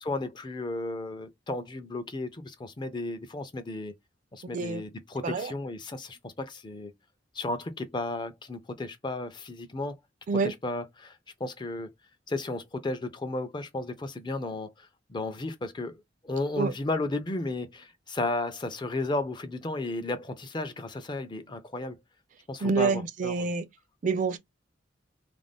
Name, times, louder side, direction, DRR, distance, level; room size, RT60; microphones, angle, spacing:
voice 1, 0.0-3.9 4.3-6.9 7.3-10.0 10.4-11.9 12.3-22.0 22.5-23.5, left 2 dB, 25° left, 0.5 m, -34 dB
voice 2, 22.6-23.7 24.0-24.4, right 4 dB, 45° right, 0.4 m, -27 dB
2.5 x 2.1 x 3.3 m
head